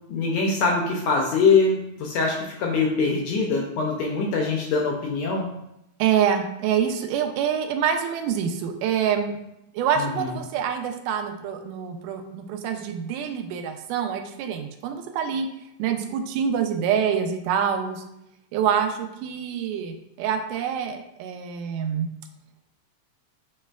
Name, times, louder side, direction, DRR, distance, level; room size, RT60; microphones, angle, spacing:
voice 1, 0.1-5.5 10.0-10.3, left 4 dB, 80° left, 0 dB, 1.6 m, -23 dB
voice 2, 6.0-9.4 9.7-15.5 15.8-18.0 18.5-22.1, right 8 dB, 90° right, 6 dB, 2.1 m, -26 dB
6.5 x 3.1 x 2.3 m, 0.83 s
omnidirectional pair, 3.6 m